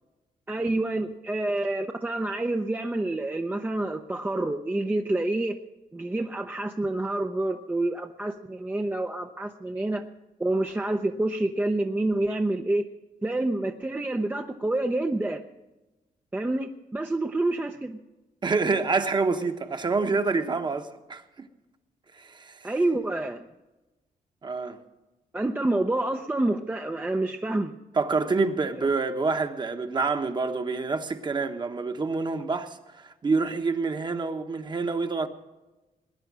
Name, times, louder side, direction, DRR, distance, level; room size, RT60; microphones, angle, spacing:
voice 1, 0.5-5.6 5.9-10.0 10.4-12.8 13.2-15.4 16.3-18.0 22.6-23.4 25.3-27.7, right 2 dB, 15° right, 0.6 m, -28 dB
voice 2, 18.4-21.2 22.1-22.7 24.4-24.8 28.0-35.3, right 4 dB, 30° right, 1.1 m, -27 dB
19.5 x 10.0 x 6.2 m
wide cardioid pair, 135°, 14 cm